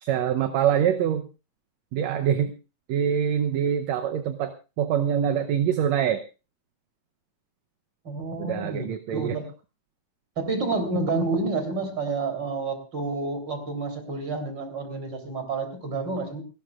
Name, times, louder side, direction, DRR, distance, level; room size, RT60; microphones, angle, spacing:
voice 1, 0.0-1.2 1.9-2.5 2.9-6.2 8.4-9.4, right 9 dB, 75° right, 7 dB, 2.1 m, -24 dB
voice 2, 8.1-9.5 10.4-16.4, right 3 dB, 40° right, 5 dB, 3.9 m, -29 dB
29.5 x 12.5 x 2.4 m, 0.32 s
omnidirectional pair, 3.3 m